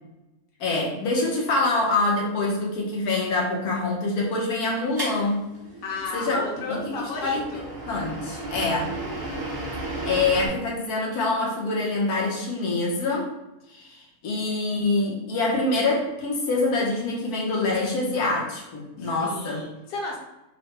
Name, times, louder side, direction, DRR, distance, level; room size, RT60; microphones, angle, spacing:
voice 1, 0.6-5.4 6.1-6.4 6.7-7.4 7.9-8.9 10.0-13.3 13.7-19.7, left 2 dB, 90° left, -2 dB, 1.5 m, -25 dB
sound 1, 5.0-10.5, right 2 dB, 25° right, 0.5 m, -34 dB
voice 2, 5.8-7.6 19.0-20.2, left 3 dB, 45° left, -2 dB, 1.1 m, -33 dB
4.6 x 2.1 x 4.4 m, 0.99 s
omnidirectional pair, 1.6 m